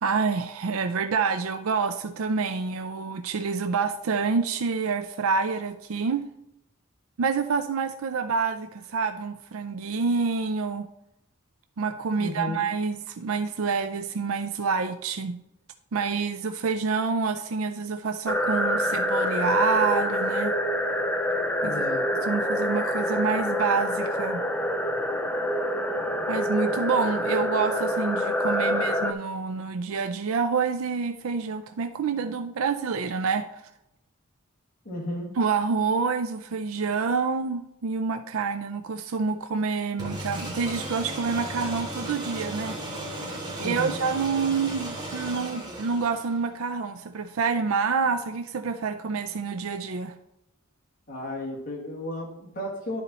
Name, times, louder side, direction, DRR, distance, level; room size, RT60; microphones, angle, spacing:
voice 1, 0.0-6.3 7.2-10.9 11.8-15.4 15.9-20.6 21.6-21.8 22.2-24.4 26.3-33.6 35.4-42.8 43.1-50.2, right 5 dB, 85° right, 8 dB, 0.5 m, -27 dB
voice 2, 12.2-12.6 21.6-22.0 34.8-35.3 43.6-44.0 51.1-53.0, left 1 dB, 45° left, -3 dB, 1.7 m, -33 dB
sound 1, 18.3-29.1, equal, 10° left, 0.5 m, -26 dB
sound 2, 40.0-46.5, right 1 dB, 20° right, 1.6 m, -35 dB
11.0 x 4.2 x 4.0 m, 0.85 s
head